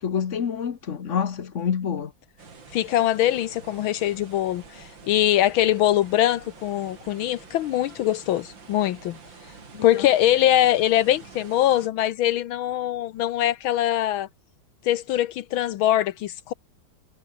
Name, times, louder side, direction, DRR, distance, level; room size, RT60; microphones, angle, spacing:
voice 1, 0.0-2.1 9.7-10.1, left 7 dB, 45° left, 1.2 m, -27 dB
sound 1, 2.4-11.9, right 4 dB, 65° right, 3.9 m, -47 dB
voice 2, 2.7-9.2 9.8-14.3 14.8-16.5, left 13 dB, 80° left, 1.6 m, -22 dB
omnidirectional pair, 2.2 m